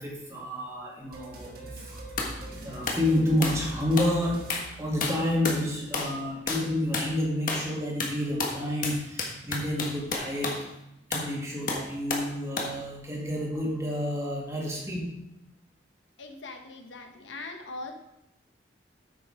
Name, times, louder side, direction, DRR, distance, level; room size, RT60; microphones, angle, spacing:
voice 1, 0.0-2.0 2.5-10.7 11.1-15.1, left 1 dB, 15° right, -3 dB, 2.1 m, -29 dB
sound 1, 1.1-5.4, right 1 dB, 50° right, 1.6 m, -42 dB
sound 2, 2.2-2.4 2.9-3.1 3.4-3.7 4.0-4.2 4.5-4.7 5.0-5.6 5.9-6.2 6.5-6.7 6.9-7.1 7.5-7.7 8.0-10.6 11.1-11.3 11.7-12.3 12.6-12.8, left 3 dB, 45° left, 1.4 m, -31 dB
voice 2, 16.2-17.9, left 2 dB, 80° left, 4 dB, 1.2 m, -41 dB
8.7 x 6.5 x 5.0 m, 0.87 s
head